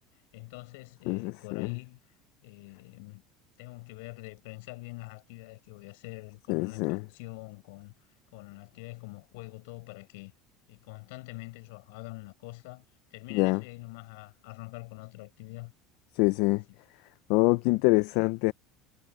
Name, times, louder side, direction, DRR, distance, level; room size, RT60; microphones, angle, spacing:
voice 1, 0.3-2.0 2.4-3.2 3.6-7.9 8.3-10.3 10.7-12.8 13.1-15.7 17.5-17.6, left 26 dB, 75° left, 6.6 m, -45 dB
voice 2, 1.1-1.7 6.5-7.0 13.3-13.6 16.1-16.6 17.3-18.5, left 24 dB, 60° left, 0.4 m, -25 dB
cardioid pair, 175°, 0 cm